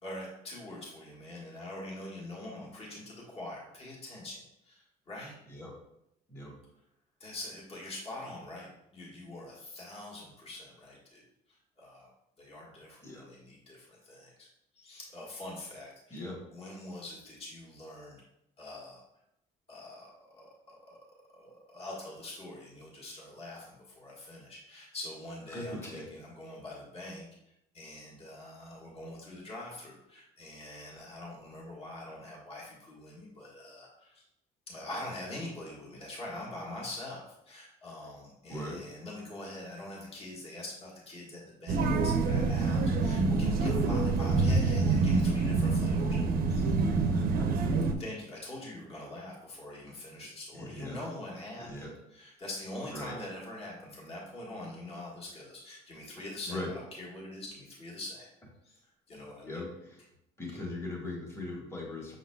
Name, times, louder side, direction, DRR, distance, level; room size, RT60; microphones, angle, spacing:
voice 1, 0.0-5.4 7.2-11.2 11.5-12.1 12.4-14.5 14.7-18.2 18.6-19.0 19.7-21.0 21.3-27.2 27.7-34.2 34.7-46.2 46.5-46.8 48.0-58.3 58.6-58.8 59.1-59.6, left 1 dB, 35° left, -4 dB, 1.5 m, -44 dB
voice 2, 25.5-26.0 38.5-38.8 47.1-47.2 50.5-51.0 51.6-51.9 52.9-53.2 56.5-56.7 59.4-60.0 60.4-62.2, left 2 dB, 15° left, -2 dB, 1.4 m, -39 dB
sound 1, 41.7-47.9, right 3 dB, 60° right, 0.6 m, -26 dB
6.3 x 3.8 x 2.2 m, 0.81 s
cardioid pair, 110°, 17 cm